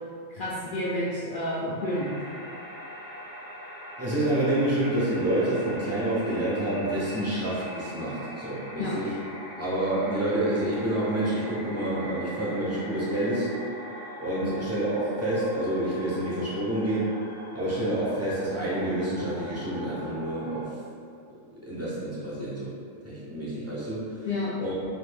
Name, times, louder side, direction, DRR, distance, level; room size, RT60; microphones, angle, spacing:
voice 1, 0.3-2.1 8.8-8.9 14.4-14.5 24.3-24.5, left 1 dB, 75° left, -7 dB, 0.4 m, -30 dB
sound 1, 1.8-20.6, equal, 50° left, 0.9 m, -42 dB
voice 2, 4.0-9.1 9.6-13.5 14.2-17.1 17.5-20.7 21.6-22.7 23.0-24.2 24.6-24.7, right 1 dB, 20° right, -9 dB, 0.4 m, -28 dB
2.6 x 2.6 x 3.3 m, 2.3 s
omnidirectional pair, 1.4 m